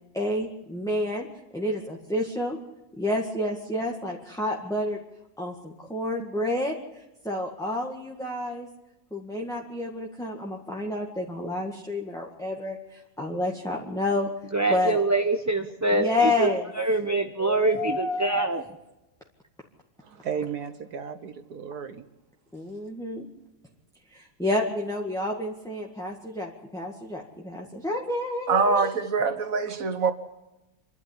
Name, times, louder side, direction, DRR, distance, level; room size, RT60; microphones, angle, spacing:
voice 1, 0.1-1.3 1.5-2.6 3.0-5.0 5.4-8.7 9.1-14.3 14.7-15.0 15.9-16.6 17.4-18.5 22.5-23.3 24.1-28.9, left 1 dB, ahead, 1.9 m, -29 dB
voice 2, 14.5-18.6, right 2 dB, 15° right, 0.8 m, -25 dB
voice 3, 20.0-22.1, right 7 dB, 75° right, 1.7 m, -34 dB
voice 4, 28.5-30.1, right 4 dB, 60° right, 1.9 m, -24 dB
26.5 x 12.0 x 9.9 m
omnidirectional pair, 1.7 m